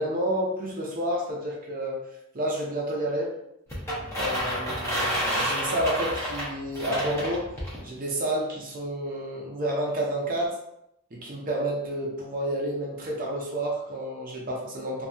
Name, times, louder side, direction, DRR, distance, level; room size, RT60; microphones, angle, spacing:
voice 1, 0.0-2.0 2.3-3.4 4.1-7.5 7.8-10.6 11.1-15.1, right 1 dB, 40° right, -2 dB, 0.6 m, -30 dB
sound 1, 3.7-7.8, equal, 15° left, 0.7 m, -29 dB
2.7 x 2.6 x 2.3 m, 0.79 s
head